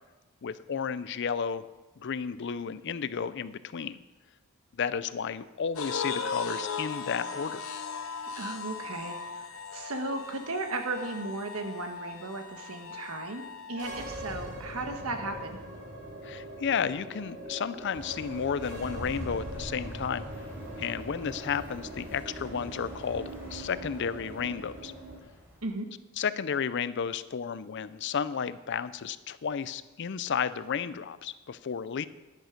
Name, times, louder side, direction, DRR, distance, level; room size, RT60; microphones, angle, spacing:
voice 1, 0.4-1.7 2.0-4.0 4.7-7.6 16.2-20.3 20.8-24.9 26.2-32.1, left 6 dB, 55° left, 15 dB, 0.5 m, -32 dB
sound 1, 5.8-14.1, left 5 dB, 70° left, 1.0 m, -38 dB
voice 2, 8.4-15.6 25.6-25.9, right 2 dB, 90° right, 5 dB, 1.4 m, -36 dB
sound 2, 13.7-25.2, right 1 dB, 55° right, 3.1 m, -42 dB
sound 3, 17.9-25.7, equal, 10° right, 4.4 m, -46 dB
10.5 x 10.5 x 5.1 m, 1.1 s
head